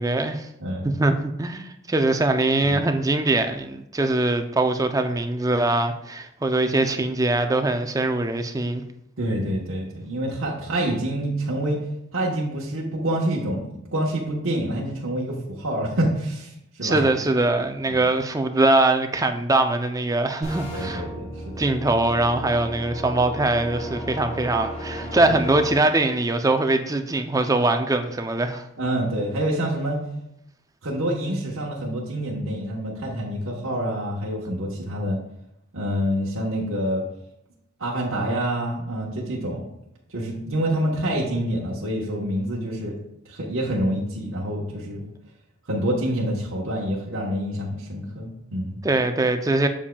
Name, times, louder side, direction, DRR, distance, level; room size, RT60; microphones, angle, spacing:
voice 1, 0.0-0.5 0.8-8.8 16.8-21.1 21.6-28.7 48.8-49.7, right 2 dB, 15° right, 7 dB, 0.4 m, -22 dB
voice 2, 0.6-0.9 2.6-2.8 9.2-11.8 12.1-16.5 16.8-17.1 17.9-18.0 20.7-21.7 25.3-25.4 28.8-30.0 30.8-35.2 35.7-37.0 37.8-39.6 40.1-42.9 43.3-45.0 45.7-48.8, right 1 dB, 75° right, -4 dB, 1.1 m, -27 dB
sound 1, 20.4-25.8, equal, 30° left, 1.1 m, -34 dB
7.3 x 7.1 x 2.3 m, 0.80 s
head